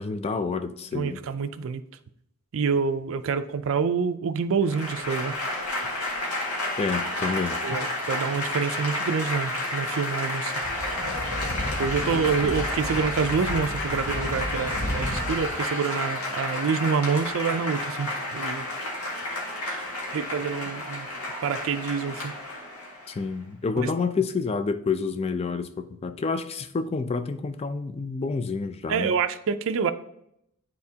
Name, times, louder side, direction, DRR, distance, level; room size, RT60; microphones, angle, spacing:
voice 1, 0.0-1.2 6.8-7.6 23.1-29.1, left 4 dB, 25° left, 9 dB, 0.4 m, -28 dB
voice 2, 0.9-1.8 2.5-5.4 7.6-10.5 11.8-18.7 19.6-19.8 20.1-21.1 21.4-22.3 23.8-23.9 28.9-29.9, right 5 dB, 60° right, 10 dB, 0.4 m, -27 dB
Applause / Crowd, 4.6-23.2, left 1 dB, 80° left, 1.8 m, -31 dB
Speech / Wind, 10.6-15.5, equal, 50° left, 1.0 m, -33 dB
9.5 x 4.3 x 2.8 m, 0.77 s
head